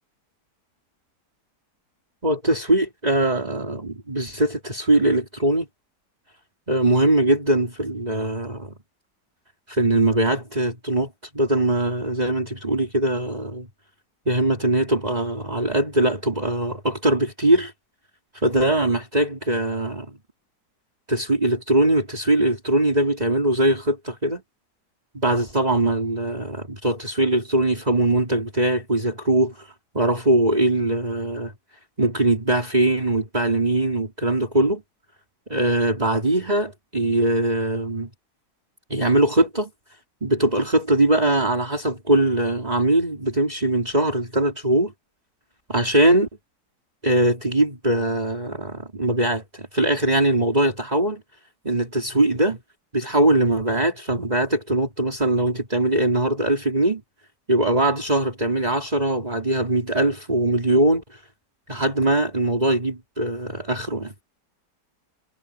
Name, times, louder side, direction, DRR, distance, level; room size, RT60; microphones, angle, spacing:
voice 1, 2.2-5.7 6.7-8.8 9.7-13.7 14.3-17.7 18.3-20.2 21.1-24.4 25.1-29.7 29.9-31.5 32.0-34.8 35.5-38.1 38.9-39.7 40.2-44.9 45.7-46.3 47.0-51.2 51.6-52.6 52.9-57.0 57.5-61.2 61.7-64.1, right 1 dB, 20° right, 3.7 m, -21 dB
omnidirectional pair, 1.8 m